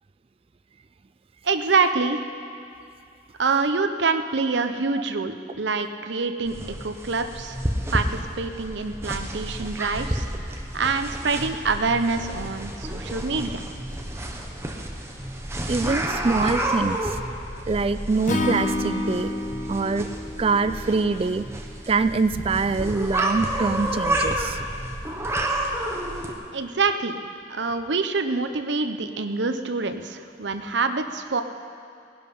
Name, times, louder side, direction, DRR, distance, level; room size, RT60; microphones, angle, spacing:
voice 1, 1.4-2.3 3.4-6.6 6.8-7.6 7.9-10.3 10.7-13.6 26.5-27.2 27.5-31.4, right 4 dB, 75° right, 8 dB, 0.8 m, -25 dB
sound 1, 6.5-26.3, right 1 dB, 15° right, 1.1 m, -30 dB
voice 2, 15.7-17.2 17.7-19.3 19.7-20.1 20.4-21.4 21.9-24.6, right 4 dB, 30° right, 12 dB, 0.4 m, -24 dB
Acoustic guitar / Strum, 18.3-21.5, left 2 dB, 40° left, 0.9 m, -29 dB
18.5 x 11.0 x 5.4 m, 2.4 s
head